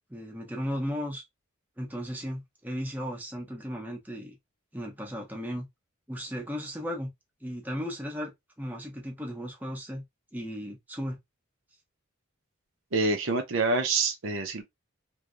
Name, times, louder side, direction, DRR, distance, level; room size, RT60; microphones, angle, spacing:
voice 1, 0.1-1.2 1.8-4.4 4.7-5.7 6.1-7.1 7.4-8.3 8.6-10.0 10.3-11.2, equal, 10° right, 0.7 m, -35 dB
voice 2, 12.9-14.6, right 3 dB, 70° right, 0.7 m, -26 dB
3.1 x 2.7 x 2.5 m
head